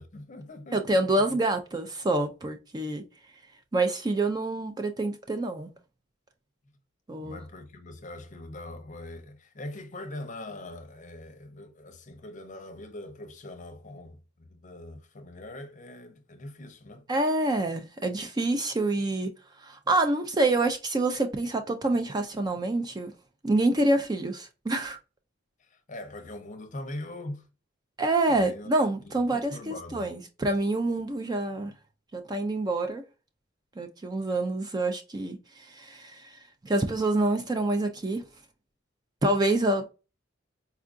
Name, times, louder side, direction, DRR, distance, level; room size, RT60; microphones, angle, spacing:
voice 1, 0.0-1.0 1.3-1.4 7.2-17.1 25.6-27.5 28.3-28.7 29.0-30.1, left 1 dB, 40° left, 0.6 m, -42 dB
voice 2, 0.7-3.0 3.7-5.7 7.1-7.4 17.1-19.3 19.6-23.1 23.4-25.0 28.0-31.7 32.1-33.0 33.8-35.4 35.8-36.3 36.6-38.2 39.2-39.9, right 2 dB, 20° right, 0.4 m, -27 dB
4.5 x 2.4 x 2.4 m
head